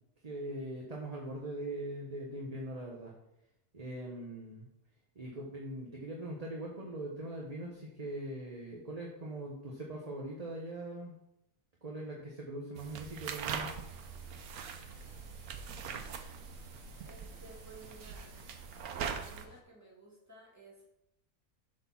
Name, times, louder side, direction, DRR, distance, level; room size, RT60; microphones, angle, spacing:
voice 1, 0.2-3.1 3.7-4.7 5.1-11.1 11.8-13.7, right 1 dB, 30° right, -2 dB, 1.0 m, -41 dB
sound 1, 12.8-19.5, right 7 dB, 75° right, 1.2 m, -42 dB
sound 2, 13.3-19.6, left 4 dB, 60° left, 1.3 m, -59 dB
voice 2, 17.0-18.3 19.0-20.8, right 3 dB, 10° right, -5 dB, 2.5 m, -55 dB
7.6 x 4.5 x 5.8 m, 0.82 s
omnidirectional pair, 1.6 m